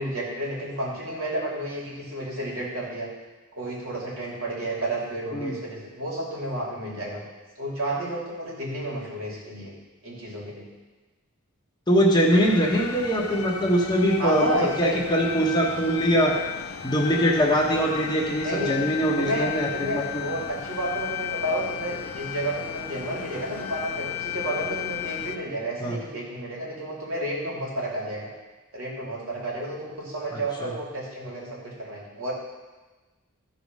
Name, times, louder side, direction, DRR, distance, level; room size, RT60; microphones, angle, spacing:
voice 1, 0.0-3.1 3.5-7.2 7.6-9.7 10.0-10.6 14.2-15.0 18.4-18.8 19.2-28.3 28.7-32.3, right 1 dB, 65° right, -5 dB, 3.2 m, -31 dB
voice 2, 11.9-16.3 16.8-20.2 25.8-26.0 30.3-30.7, equal, 20° left, -1 dB, 1.2 m, -23 dB
sound 1, 12.3-25.4, left 9 dB, 80° left, 0.7 m, -34 dB
14.0 x 4.8 x 5.5 m, 1.2 s
head